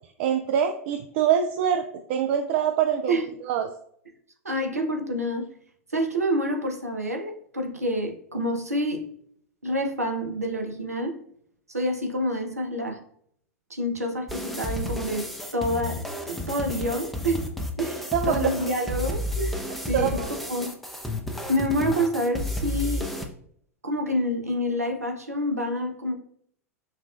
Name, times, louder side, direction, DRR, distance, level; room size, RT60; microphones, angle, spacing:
voice 1, 0.2-3.7 18.1-18.5 19.9-20.3, right 8 dB, 50° right, 6 dB, 0.3 m, -24 dB
voice 2, 4.4-5.5 5.9-9.1 9.6-11.2 11.7-13.0 13.7-15.3 15.5-17.5 17.8-20.2 20.5-20.8 21.5-23.1 23.8-26.1, equal, 90° right, 3 dB, 0.7 m, -27 dB
sound 1, 14.3-23.3, left 1 dB, ahead, 0.5 m, -32 dB
5.8 x 2.3 x 2.4 m, 0.64 s
figure-of-eight pair, 90°, 8 cm